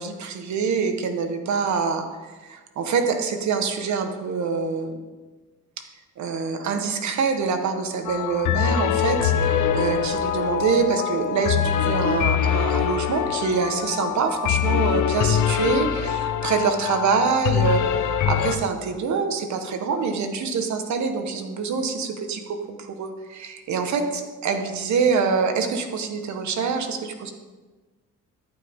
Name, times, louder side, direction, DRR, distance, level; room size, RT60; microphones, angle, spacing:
voice 1, 0.0-2.1 2.4-5.0 6.2-27.3, right 5 dB, 70° right, 6 dB, 1.4 m, -25 dB
sound 1, 8.0-18.6, left 9 dB, 75° left, 0.9 m, -23 dB
13.5 x 8.4 x 3.7 m, 1.3 s
cardioid pair, 90°, 30 cm